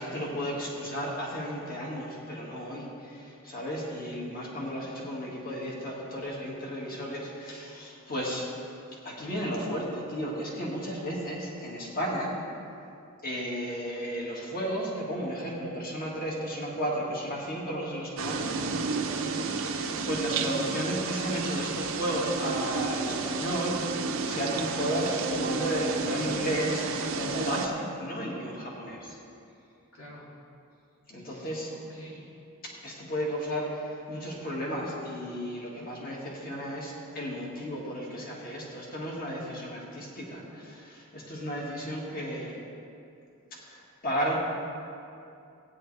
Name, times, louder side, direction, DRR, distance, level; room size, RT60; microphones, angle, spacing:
voice 1, 0.0-8.4 9.0-12.3 13.2-18.6 19.7-29.2 31.1-31.7 32.6-42.6 43.6-44.4, equal, 45° left, -3 dB, 1.9 m, -33 dB
sound 1, 18.2-27.7, right 4 dB, 65° right, 0.7 m, -31 dB
voice 2, 19.0-19.5 29.9-30.3 31.3-32.4, equal, 70° left, -5 dB, 2.3 m, -48 dB
16.0 x 9.6 x 3.3 m, 2.6 s
head